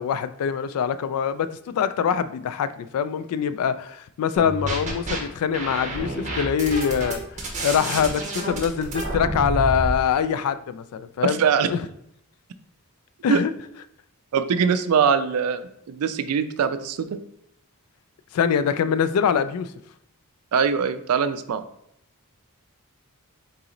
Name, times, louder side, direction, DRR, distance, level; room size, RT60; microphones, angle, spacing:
voice 1, 0.0-11.4 11.7-11.9 13.2-13.5 18.3-19.7, left 7 dB, 80° left, 14 dB, 0.3 m, -24 dB
sound 1, 4.3-5.2 5.5-9.9, right 1 dB, 35° right, 0.9 m, -29 dB
voice 2, 11.2-11.7 13.3-13.4 14.3-17.2 20.5-21.6, right 6 dB, 85° right, 11 dB, 0.4 m, -22 dB
4.0 x 2.9 x 3.8 m, 0.73 s
head